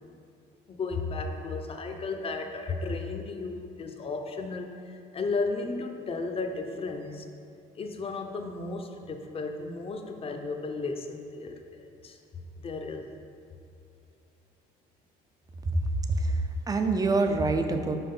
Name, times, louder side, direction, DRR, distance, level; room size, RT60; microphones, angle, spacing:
voice 1, 0.7-7.3 7.7-12.2 12.6-13.1, left 3 dB, 35° left, 5 dB, 0.7 m, -34 dB
voice 2, 16.2-18.0, right 2 dB, 20° right, 6 dB, 0.6 m, -26 dB
5.8 x 4.8 x 5.4 m, 2.5 s
cardioid pair, 110°, 17 cm